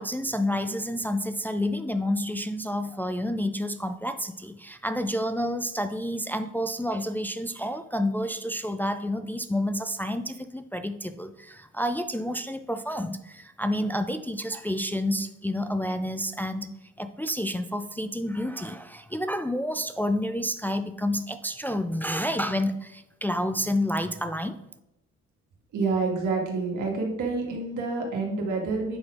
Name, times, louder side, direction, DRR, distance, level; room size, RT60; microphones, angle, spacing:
voice 1, 0.0-16.7 17.0-24.6, left 1 dB, 5° left, 9 dB, 0.4 m, -29 dB
voice 2, 25.7-29.0, right 4 dB, 85° right, 0 dB, 2.1 m, -28 dB
8.8 x 4.2 x 4.7 m, 0.89 s
cardioid pair, 90°, 30 cm